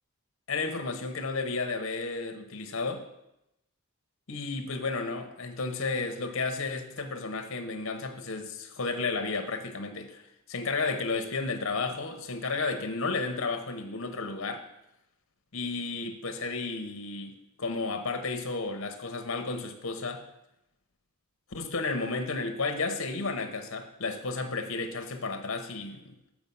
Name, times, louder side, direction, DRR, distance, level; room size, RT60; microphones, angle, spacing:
voice 1, 0.5-3.0 4.3-10.2 10.5-14.6 15.5-20.2 21.5-26.1, left 3 dB, 60° left, 7 dB, 0.8 m, -32 dB
7.1 x 4.8 x 5.4 m, 0.87 s
head